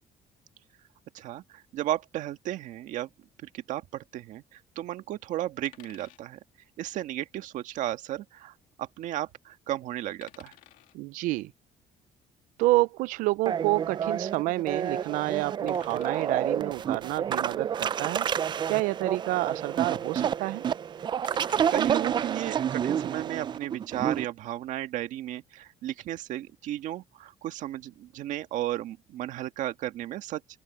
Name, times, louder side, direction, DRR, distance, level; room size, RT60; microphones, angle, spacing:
voice 1, 1.1-3.1 3.4-6.4 6.8-10.5 21.7-30.4, right 13 dB, 75° right, 1.7 m, -34 dB
sound 1, 5.7-6.2 7.7-7.9 10.2-11.0 13.4-13.6 15.7-16.3 18.3-18.4 18.7-18.8 21.2-21.9 23.6-23.9, left 14 dB, 85° left, 2.2 m, -53 dB
voice 2, 10.9-11.5 12.6-18.3 18.7-20.6, right 20 dB, 90° right, 0.5 m, -28 dB
sound 2, 13.5-24.2, right 8 dB, 35° right, 0.4 m, -29 dB
open air
cardioid pair, 120°, 13 cm